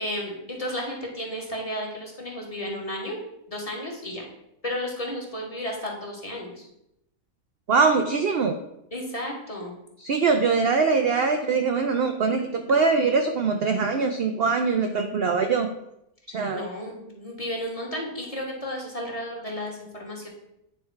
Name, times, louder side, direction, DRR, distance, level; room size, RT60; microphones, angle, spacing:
voice 1, 0.0-3.2 3.5-4.2 4.6-6.7 8.9-9.7 16.5-20.3, left 1 dB, 25° left, -1 dB, 1.3 m, -33 dB
voice 2, 7.7-8.5 10.0-15.7 16.3-16.6, right 4 dB, 65° right, 5 dB, 0.5 m, -22 dB
9.3 x 3.5 x 4.5 m, 0.82 s
omnidirectional pair, 1.6 m